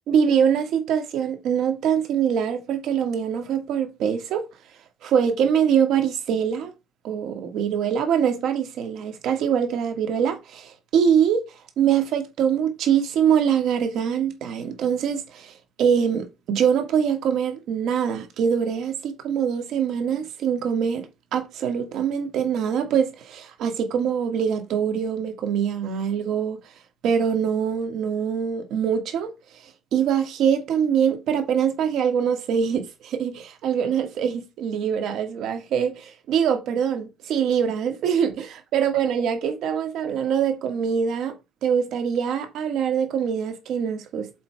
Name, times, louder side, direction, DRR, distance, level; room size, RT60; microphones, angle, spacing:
voice 1, 0.1-4.4 5.0-6.7 7.0-11.4 11.8-21.1 21.3-26.6 27.0-29.3 29.9-44.3, right 8 dB, 65° right, 2.0 m, -23 dB
7.9 x 3.8 x 4.7 m
cardioid pair, 165°, 0 cm